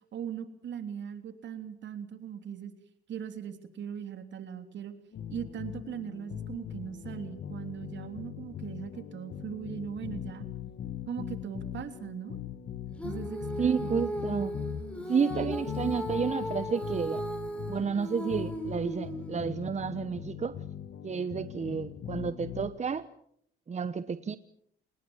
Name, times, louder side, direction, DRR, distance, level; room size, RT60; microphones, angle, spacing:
voice 1, 0.1-2.7 3.1-4.9 5.3-10.5 11.1-12.4 13.0-13.9, right 8 dB, 65° right, 8 dB, 3.3 m, -39 dB
sound 1, 5.1-22.8, left 9 dB, 65° left, 2.2 m, -40 dB
Female singing, 13.0-19.5, equal, 5° left, 6.0 m, -37 dB
voice 2, 13.6-14.5 15.1-17.2 17.7-20.6 21.0-23.1 23.7-24.4, right 6 dB, 35° right, 13 dB, 1.1 m, -31 dB
27.5 x 20.5 x 7.2 m, 0.69 s
cardioid pair, 90°, 20 cm